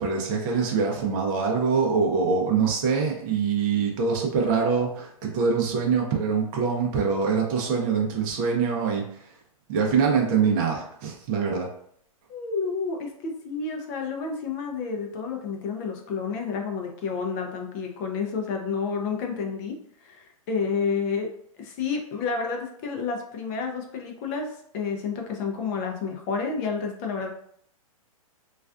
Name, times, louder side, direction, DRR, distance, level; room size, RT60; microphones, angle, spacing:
voice 1, 0.0-9.3 9.7-11.7, right 5 dB, 35° right, 0 dB, 0.6 m, -24 dB
voice 2, 12.3-19.7 20.0-21.3 21.6-27.3, left 5 dB, 30° left, 3 dB, 0.4 m, -30 dB
2.3 x 2.3 x 2.4 m, 0.66 s
hypercardioid pair, 140°, 18 cm